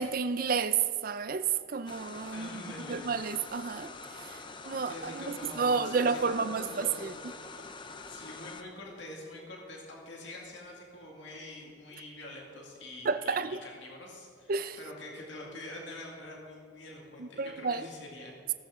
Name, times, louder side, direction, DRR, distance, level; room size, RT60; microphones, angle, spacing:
voice 1, 0.0-2.6 2.9-3.9 4.2-7.1 13.0-13.6 14.5-14.8 17.2-17.9, right 5 dB, 45° right, 0.5 m, -31 dB
sound 1, 1.9-8.6, left 3 dB, 25° left, 0.6 m, -45 dB
voice 2, 2.3-3.2 4.8-7.1 8.1-18.4, left 1 dB, 65° left, 2.2 m, -45 dB
15.5 x 14.0 x 3.7 m
head